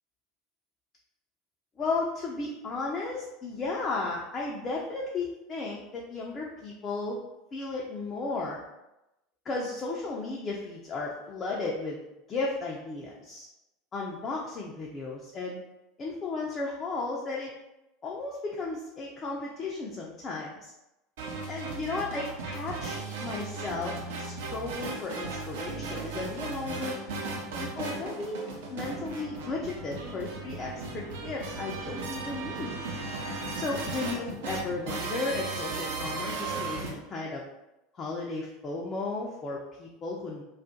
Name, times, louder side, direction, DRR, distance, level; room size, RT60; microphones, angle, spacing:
voice 1, 1.8-7.2 7.5-8.6 9.5-12.0 12.3-13.5 13.9-15.6 16.0-17.5 18.0-20.7 21.5-27.0 27.6-32.7 33.5-37.4 37.9-40.4, left 3 dB, 30° left, -3 dB, 0.4 m, -34 dB
sound 1, 21.2-36.9, right 3 dB, 65° right, 0.5 m, -36 dB
2.3 x 2.0 x 2.7 m, 0.93 s
figure-of-eight pair, 75°, 0 cm